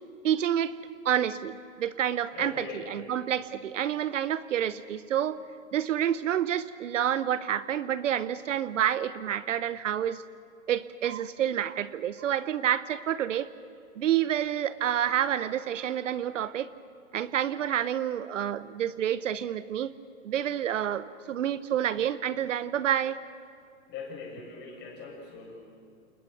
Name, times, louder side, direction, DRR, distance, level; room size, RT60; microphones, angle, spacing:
voice 1, 0.2-0.8 1.0-5.4 5.7-10.2 10.7-13.5 14.0-16.7 17.1-19.9 20.2-23.2, right 10 dB, 65° right, 15 dB, 0.9 m, -28 dB
voice 2, 2.3-3.0 23.9-25.6, left 5 dB, 25° left, 0 dB, 7.9 m, -41 dB
29.5 x 28.5 x 6.2 m, 2.4 s
hypercardioid pair, 130°, 41 cm